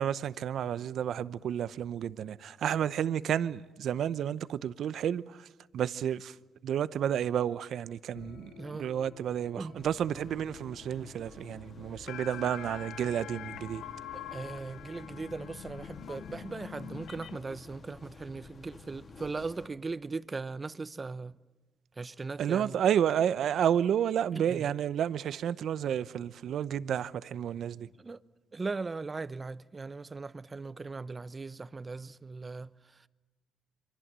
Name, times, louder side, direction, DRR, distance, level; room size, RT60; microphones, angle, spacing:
voice 1, 0.0-5.2 5.7-6.3 6.6-13.8 22.4-27.9, right 9 dB, 70° right, 0.8 m, -31 dB
sound 1, 8.1-17.4, left 10 dB, 75° left, 0.9 m, -46 dB
voice 2, 8.6-8.9 9.5-9.8 14.1-21.3 22.0-22.8 24.3-24.7 28.0-28.2 28.5-32.7, right 3 dB, 30° right, 0.8 m, -39 dB
sound 2, 9.8-19.7, left 4 dB, 45° left, 3.0 m, -51 dB
27.0 x 24.5 x 7.5 m
cardioid pair, 90°, 0 cm